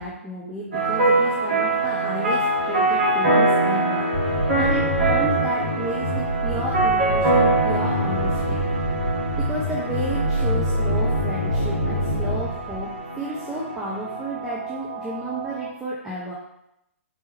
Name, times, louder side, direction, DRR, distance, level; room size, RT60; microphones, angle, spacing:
voice 1, 0.0-8.6 9.4-12.9 13.2-16.3, right 1 dB, 5° right, -6 dB, 0.5 m, -32 dB
sound 1, 0.7-15.7, right 2 dB, 50° right, 1.5 m, -24 dB
sound 2, 4.1-13.0, left 1 dB, 65° left, 0.6 m, -26 dB
4.0 x 3.4 x 3.1 m, 0.82 s
figure-of-eight pair, 125°, 8 cm